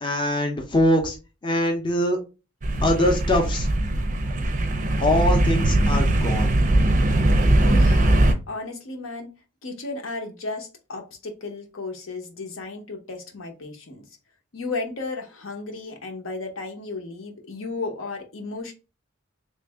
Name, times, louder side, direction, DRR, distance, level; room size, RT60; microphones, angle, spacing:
voice 1, 0.0-1.2 1.4-2.2 2.8-3.7 5.0-6.5, left 1 dB, 25° left, 0.6 m, -22 dB
sound 1, 2.6-8.3, right 1 dB, 40° right, 0.5 m, -20 dB
voice 2, 7.6-8.1 8.5-9.3 9.6-14.0 14.5-18.7, left 3 dB, 75° left, 0.9 m, -34 dB
3.2 x 2.6 x 3.4 m
head